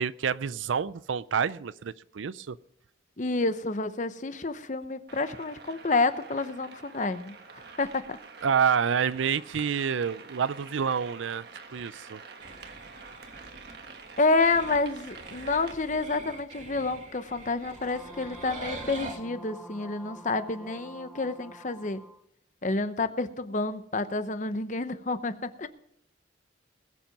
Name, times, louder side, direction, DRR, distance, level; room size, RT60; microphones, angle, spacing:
voice 1, 0.0-2.6 8.4-11.4 11.7-12.2, right 7 dB, 85° right, 18 dB, 0.5 m, -28 dB
voice 2, 3.2-7.4 7.8-8.2 14.2-22.0 22.6-25.7, left 3 dB, 40° left, 11 dB, 0.8 m, -29 dB
sound 1, 5.1-15.7, right 4 dB, 60° right, 1.3 m, -47 dB
sound 2, 12.4-19.2, right 2 dB, 40° right, 2.0 m, -44 dB
sound 3, 17.7-22.2, equal, ahead, 0.6 m, -47 dB
20.5 x 7.4 x 5.3 m, 0.71 s
head